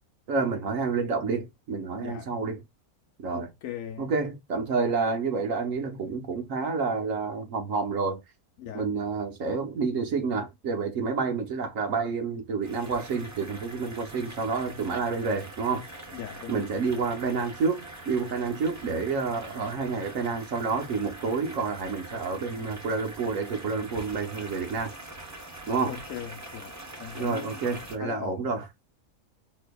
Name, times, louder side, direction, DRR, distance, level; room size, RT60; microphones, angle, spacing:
voice 1, 0.3-2.6 3.2-3.5 4.0-8.2 8.7-15.9 16.5-24.9 25.7-26.0 27.1-28.6, right 4 dB, 65° right, 1.2 m, -29 dB
voice 2, 2.0-2.3 3.3-4.1 8.6-8.9 16.1-16.7 25.8-28.5, left 9 dB, 65° left, 1.0 m, -39 dB
sound 1, 12.6-27.9, right 2 dB, 15° right, 0.6 m, -44 dB
4.2 x 2.8 x 2.2 m
omnidirectional pair, 1.5 m